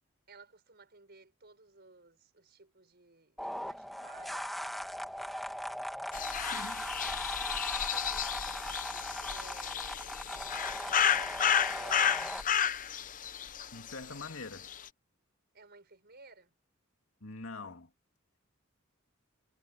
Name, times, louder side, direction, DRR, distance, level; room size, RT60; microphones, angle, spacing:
voice 1, 0.3-4.5 7.7-9.0 9.3-10.1 10.8-12.3 15.5-16.5, right 3 dB, 50° right, 5.7 m, -56 dB
sound 1, 3.4-12.4, equal, ahead, 1.8 m, -39 dB
sound 2, 6.1-14.3 14.6-14.9, left 8 dB, 40° left, 0.7 m, -32 dB
voice 2, 6.4-6.9 13.7-14.7 17.2-17.9, left 3 dB, 70° left, 2.5 m, -44 dB
head